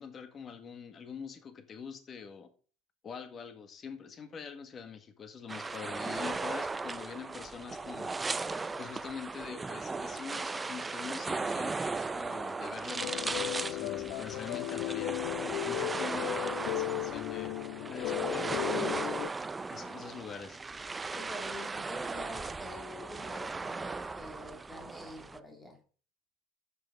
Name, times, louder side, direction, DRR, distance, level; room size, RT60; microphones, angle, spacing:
voice 1, 0.0-2.5 3.0-8.2 8.8-15.2 15.7-17.5 17.9-19.1 19.7-20.6, left 6 dB, 30° left, 9 dB, 1.7 m, -44 dB
sound 1, 5.5-25.4, right 3 dB, 15° right, 0.5 m, -37 dB
sound 2, 13.0-19.3, left 17 dB, 70° left, 0.4 m, -35 dB
voice 2, 21.1-25.8, left 1 dB, 10° left, 4 dB, 2.2 m, -47 dB
13.0 x 6.8 x 3.7 m, 0.39 s
cardioid pair, 130°, 0 cm